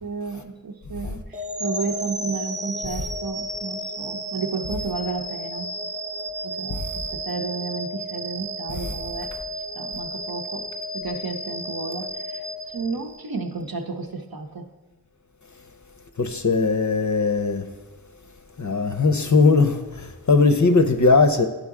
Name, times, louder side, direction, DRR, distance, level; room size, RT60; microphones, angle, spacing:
voice 1, 0.0-5.8 6.4-6.8 7.1-9.3 9.8-10.7 10.9-12.4 12.7-14.7, right 4 dB, 55° right, 4 dB, 0.7 m, -32 dB
sound 1, 1.3-13.4, equal, 20° right, 0.4 m, -33 dB
voice 2, 16.2-17.7 18.6-21.5, left 3 dB, 45° left, 6 dB, 0.6 m, -19 dB
10.5 x 3.9 x 3.6 m, 1.2 s
wide cardioid pair, 40°, 42 cm